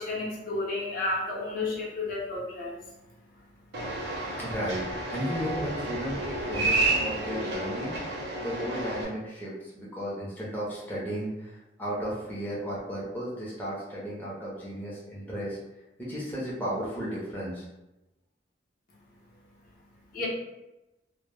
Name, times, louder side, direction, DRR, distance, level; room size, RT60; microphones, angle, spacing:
voice 1, 0.0-4.4 18.9-20.3, left 2 dB, 50° left, -5 dB, 0.7 m, -34 dB
sound 1, 3.7-9.0, right 2 dB, 65° right, 0.6 m, -30 dB
voice 2, 4.4-15.6 16.0-17.6, equal, 10° left, -7 dB, 0.5 m, -34 dB
2.1 x 2.0 x 3.0 m, 0.98 s
head